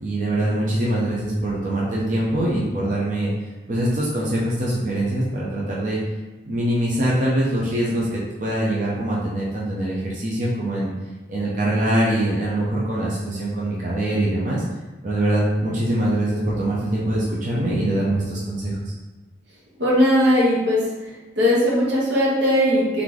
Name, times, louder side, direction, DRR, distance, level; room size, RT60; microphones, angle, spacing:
voice 1, 0.0-3.3 3.7-6.0 6.5-10.9 11.3-14.6 15.0-18.9, right 1 dB, 45° right, -6 dB, 0.8 m, -23 dB
voice 2, 19.8-20.8 21.4-23.0, equal, 85° right, -5 dB, 1.4 m, -18 dB
3.4 x 3.3 x 3.9 m, 1.2 s
head